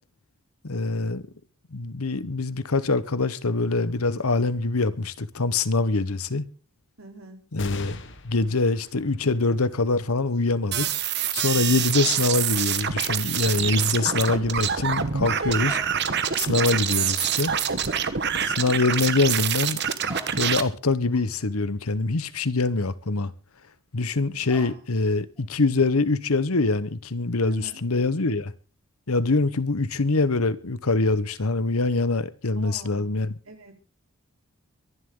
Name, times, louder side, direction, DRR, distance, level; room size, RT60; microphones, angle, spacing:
voice 1, 0.6-1.2 1.7-6.5 7.5-8.0 8.2-10.9 11.3-15.8 16.4-17.5 18.6-19.8 20.4-23.3 23.9-28.5 29.1-33.3, left 3 dB, 85° left, 1.1 m, -24 dB
voice 2, 7.0-7.5 11.6-11.9 17.8-18.2 24.1-24.5 27.4-27.8 32.6-33.8, right 2 dB, 75° right, 3.6 m, -46 dB
sound 1, 7.6-14.5 15.1-15.2 16.3-16.9, left 3 dB, 55° left, 1.5 m, -45 dB
sound 2, 10.7-20.6, right 8 dB, 50° right, 1.2 m, -26 dB
sound 3, 15.7-16.4 16.7-17.2 17.5-17.9 19.7-19.8 20.0-23.3 24.5-25.0 25.4-26.1, right 1 dB, 5° right, 5.1 m, -50 dB
23.5 x 11.5 x 3.8 m
head